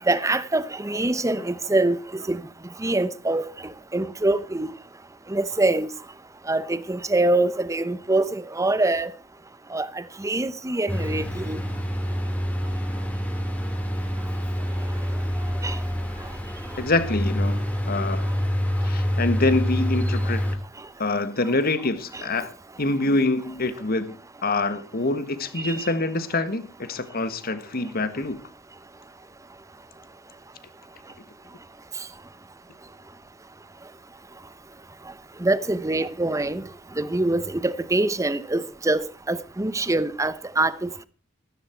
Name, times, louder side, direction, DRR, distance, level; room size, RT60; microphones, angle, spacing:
voice 1, 0.1-2.4 2.8-3.5 3.9-4.7 5.3-5.9 6.5-9.1 9.7-9.9 10.2-11.6 15.6-15.8 22.1-22.2 25.6-25.9 35.4-36.6 37.0-41.1, right 2 dB, 15° right, 0.8 m, -24 dB
sound 1, 10.9-20.6, equal, 10° left, 2.6 m, -26 dB
voice 2, 16.8-18.3 18.8-20.6 21.0-22.5 22.8-24.2 24.4-28.4, left 2 dB, 50° left, 1.5 m, -25 dB
14.0 x 13.5 x 4.5 m
head